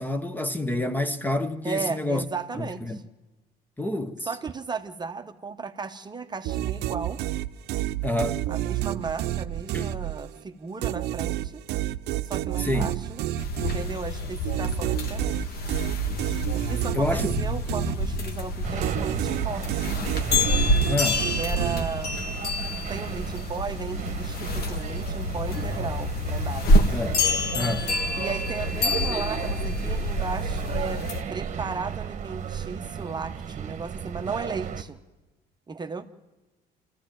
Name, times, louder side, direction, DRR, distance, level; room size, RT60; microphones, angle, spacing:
voice 1, 0.0-2.2 2.5-3.0 3.8-4.3 8.0-8.4 9.7-10.0 12.6-13.0 16.9-17.3 20.9-21.3 26.9-27.2 27.5-27.9, left 1 dB, 10° left, 1.0 m, -28 dB
voice 2, 1.6-3.0 4.3-7.2 8.5-11.6 12.3-13.2 13.6-15.6 16.6-19.7 21.4-22.2 22.9-26.8 28.2-31.0 31.3-35.0 35.7-36.1, right 5 dB, 25° right, 0.9 m, -35 dB
sound 1, 6.4-10.4 10.8-18.4 18.8-22.3, right 13 dB, 80° right, 0.7 m, -30 dB
sound 2, 13.4-31.2, left 2 dB, 65° left, 1.8 m, -27 dB
sound 3, 18.6-34.8, right 8 dB, 45° right, 1.2 m, -35 dB
25.5 x 14.5 x 9.0 m
cardioid pair, 110°, 17 cm